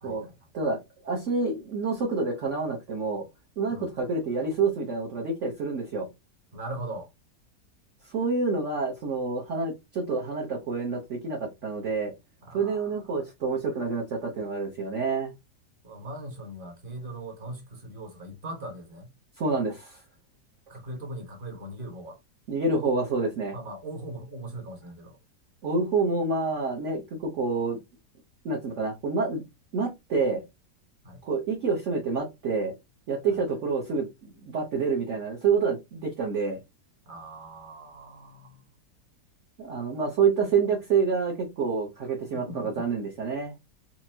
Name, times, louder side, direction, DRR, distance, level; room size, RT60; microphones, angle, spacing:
voice 1, 0.0-0.4 3.7-3.9 6.5-7.1 12.4-13.2 15.8-19.1 20.7-22.2 23.5-25.2 31.0-31.2 33.3-33.6 37.1-38.6 42.0-42.7, right 1 dB, 35° right, 1.4 m, -40 dB
voice 2, 0.5-3.2 3.6-6.1 8.1-12.1 12.5-15.3 19.4-20.0 22.5-23.5 25.6-27.8 28.4-29.4 29.7-30.4 31.2-32.7 33.1-36.6 39.6-43.5, right 4 dB, 50° right, 1.2 m, -28 dB
4.6 x 2.8 x 2.8 m
omnidirectional pair, 1.8 m